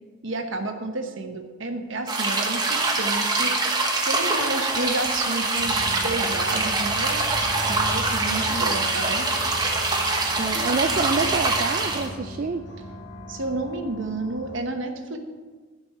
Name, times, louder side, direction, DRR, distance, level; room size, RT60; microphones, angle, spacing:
voice 1, 0.2-7.3 7.7-9.3 13.3-15.2, right 2 dB, 70° right, 5 dB, 1.1 m, -31 dB
sound 1, 2.1-12.1, right 3 dB, 20° right, 1.1 m, -24 dB
sound 2, 5.5-14.6, equal, 55° left, 1.5 m, -37 dB
voice 2, 10.4-12.7, right 4 dB, 40° right, 6 dB, 0.3 m, -26 dB
10.5 x 5.3 x 7.7 m, 1.4 s
head